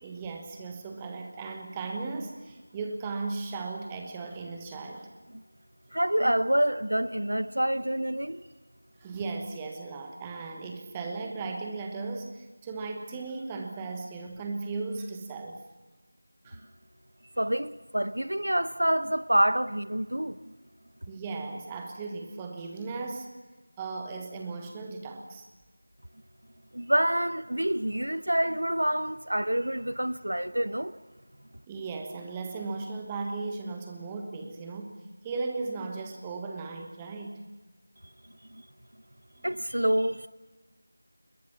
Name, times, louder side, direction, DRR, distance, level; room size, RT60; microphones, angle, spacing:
voice 1, 0.0-5.1 9.0-15.6 16.4-16.7 21.1-23.3 23.8-25.5 31.7-35.0 35.2-37.4, right 3 dB, 10° right, 1.3 m, -36 dB
voice 2, 5.9-8.4 17.4-20.5 26.7-30.9 38.5-38.6 39.4-40.3, right 1 dB, 70° right, 0.9 m, -27 dB
23.0 x 21.5 x 7.1 m
figure-of-eight pair, 170°, 0 cm